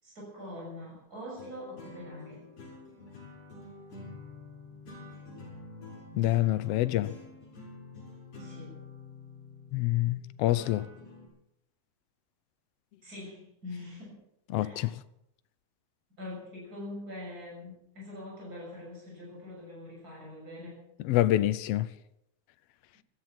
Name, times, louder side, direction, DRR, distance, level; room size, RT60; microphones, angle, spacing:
voice 1, 0.0-2.5 8.4-8.8 13.0-14.3 14.6-14.9 16.2-20.9, left 1 dB, 30° right, 7.3 m, -43 dB
sound 1, 1.3-11.3, left 3 dB, 55° left, 7.3 m, -48 dB
voice 2, 6.1-7.1 9.7-10.9 14.5-14.9 21.0-21.9, left 14 dB, 75° left, 1.5 m, -26 dB
16.5 x 13.5 x 5.9 m
omnidirectional pair, 3.4 m